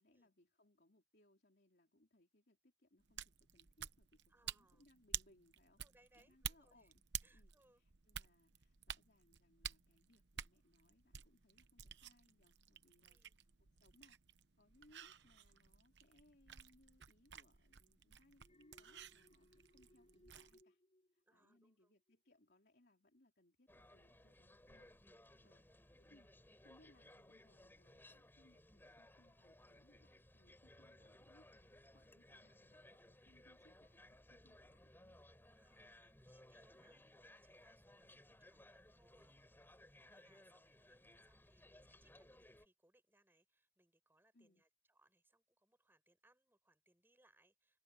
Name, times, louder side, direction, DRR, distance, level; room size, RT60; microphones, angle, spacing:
voice 1, 0.0-5.8 6.2-7.0 7.3-14.2 14.6-20.8 21.1-26.3 26.6-35.2 44.3-44.6, left 1 dB, 60° left, 3.6 m, -72 dB
sound 1, 3.0-20.6, right 10 dB, 70° right, 0.9 m, -52 dB
voice 2, 4.3-4.9 5.8-6.9 7.2-7.8 13.0-13.4 21.2-22.0 25.4-25.7 35.6-47.8, right 1 dB, 10° right, 7.1 m, -75 dB
Alarm, 18.4-21.7 22.1-22.4, left 1 dB, 35° left, 4.8 m, -69 dB
sound 2, 23.7-42.7, left 1 dB, 10° left, 4.4 m, -63 dB
open air
head